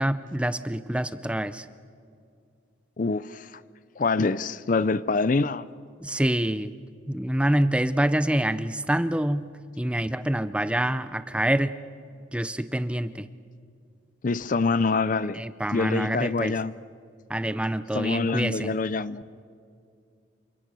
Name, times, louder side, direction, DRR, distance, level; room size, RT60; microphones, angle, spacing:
voice 1, 0.0-1.6 6.0-6.7 7.1-9.5 9.8-11.7 12.3-13.3 15.4-16.5 17.3-18.7, right 1 dB, 5° right, 13 dB, 0.5 m, -26 dB
voice 2, 3.0-3.6 4.0-5.7 14.2-15.4 15.7-16.7 17.9-19.2, left 4 dB, 45° left, 17 dB, 0.5 m, -25 dB
28.5 x 25.5 x 6.2 m, 2.3 s
head